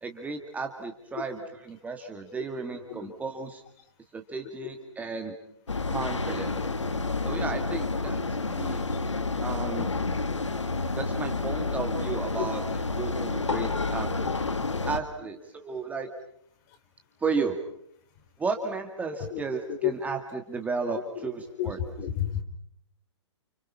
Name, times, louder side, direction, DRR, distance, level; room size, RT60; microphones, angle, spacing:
voice 1, 0.0-1.4 1.7-3.6 4.1-5.3 5.9-6.6 7.2-8.2 8.5-8.8 9.4-9.9 11.0-12.6 13.0-14.1 14.9-16.1 17.2-17.6 18.4-21.8, right 4 dB, 10° right, 5 dB, 2.1 m, -33 dB
sound 1, 5.7-15.0, left 3 dB, 80° left, 1.8 m, -29 dB
voice 2, 21.6-22.4, left 11 dB, 40° left, 8 dB, 4.4 m, -31 dB
30.0 x 29.0 x 5.7 m, 0.66 s
figure-of-eight pair, 120°, 15 cm